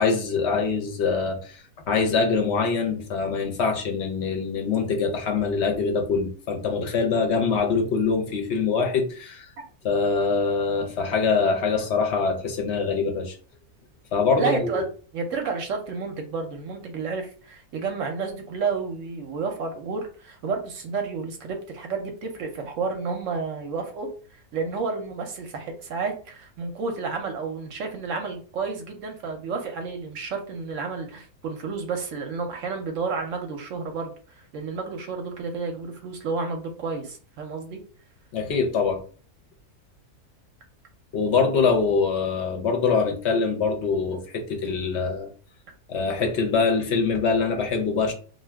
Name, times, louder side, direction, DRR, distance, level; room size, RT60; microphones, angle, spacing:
voice 1, 0.0-1.6 1.9-9.5 9.8-13.4 14.1-14.8 38.3-39.0 41.1-45.3 45.9-48.1, left 5 dB, 60° left, 3 dB, 0.7 m, -24 dB
voice 2, 14.4-14.8 15.1-37.8, right 4 dB, 65° right, 4 dB, 0.8 m, -31 dB
2.6 x 2.2 x 3.3 m, 0.40 s
omnidirectional pair, 1.6 m